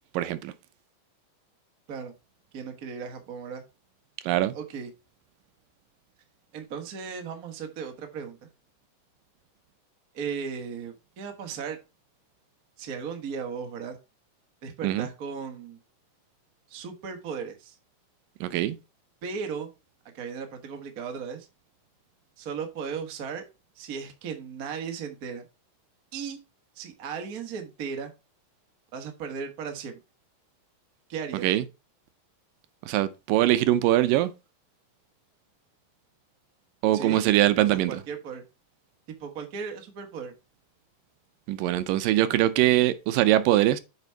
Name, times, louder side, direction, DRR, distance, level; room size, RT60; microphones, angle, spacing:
voice 1, 0.1-0.5 4.3-4.5 14.8-15.1 18.4-18.8 31.4-31.6 32.9-34.3 36.8-38.0 41.5-43.8, right 14 dB, 85° right, 2.3 m, -22 dB
voice 2, 2.5-3.6 4.5-4.9 6.5-8.5 10.1-11.8 12.8-14.0 14.6-15.8 16.7-17.8 19.2-19.7 20.1-21.5 22.4-23.4 23.8-25.5 26.1-26.4 26.7-28.1 28.9-30.0 31.1-31.5 36.9-37.2 37.6-38.4 39.2-40.3, right 6 dB, 60° right, 0.9 m, -36 dB
8.1 x 5.1 x 4.6 m
omnidirectional pair, 4.0 m